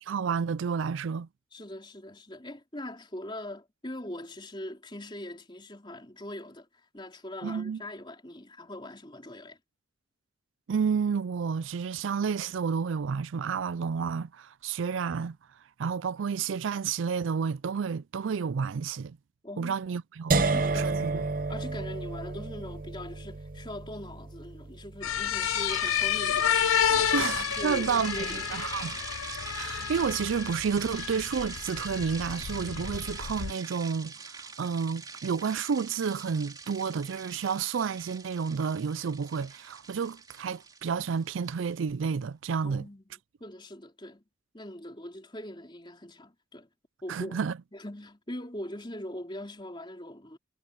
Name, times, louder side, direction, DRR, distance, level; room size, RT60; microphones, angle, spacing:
voice 1, 0.0-1.3 7.4-7.8 10.7-15.4 15.8-19.2 19.6-20.5 20.7-21.2 27.1-29.0 29.5-42.8 47.1-47.6, right 6 dB, 75° right, 0.4 m, -30 dB
voice 2, 1.5-6.7 6.9-9.6 19.4-19.8 20.3-28.5 42.6-43.0 43.4-44.2 44.5-46.7 47.0-47.4 47.7-50.4, left 1 dB, 25° left, 4.0 m, -41 dB
sound 1, 20.3-26.2, right 3 dB, 45° right, 0.8 m, -31 dB
sound 2, 25.0-33.5, left 9 dB, 90° left, 0.5 m, -30 dB
sound 3, 25.4-41.7, right 4 dB, 20° right, 3.4 m, -42 dB
head